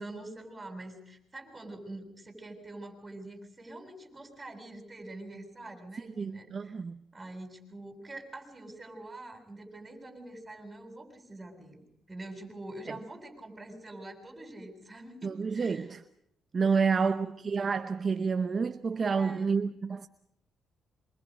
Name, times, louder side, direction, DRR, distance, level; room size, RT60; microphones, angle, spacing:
voice 1, 0.0-6.7 7.1-15.9 16.7-17.3 19.1-19.5, right 2 dB, 20° right, 7.7 m, -45 dB
voice 2, 6.0-7.0 15.2-16.0 16.5-20.1, right 5 dB, 40° right, 0.8 m, -29 dB
27.5 x 25.5 x 5.3 m
cardioid pair, 90°, 0 cm